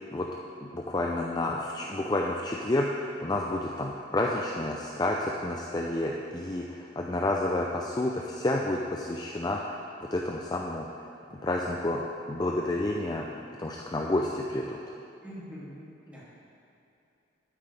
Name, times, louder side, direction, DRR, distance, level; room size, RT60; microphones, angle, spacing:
voice 1, 0.6-9.8 10.1-10.9 11.4-12.0 12.3-13.3 13.6-14.8, left 1 dB, 20° left, -1 dB, 0.5 m, -30 dB
voice 2, 15.2-16.2, equal, 5° right, -9 dB, 2.6 m, -44 dB
12.0 x 9.4 x 3.4 m, 2.8 s
head